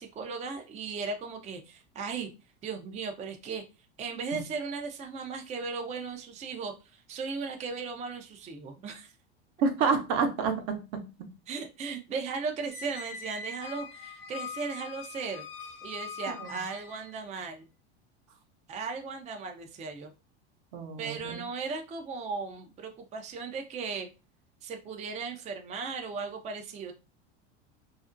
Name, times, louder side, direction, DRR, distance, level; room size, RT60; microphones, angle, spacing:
voice 1, 0.0-2.3 2.6-3.6 4.0-9.1 11.5-15.4 15.8-17.7 18.7-20.1 21.0-24.1 24.6-26.9, right 5 dB, 20° right, 4 dB, 0.4 m, -37 dB
voice 2, 9.6-10.8 16.3-16.5 20.7-21.4, right 5 dB, 65° right, 5 dB, 0.8 m, -28 dB
Squeak, 12.7-17.2, left 5 dB, 40° left, 0.5 m, -42 dB
2.4 x 2.0 x 2.5 m, 0.29 s
hypercardioid pair, 95°, 33 cm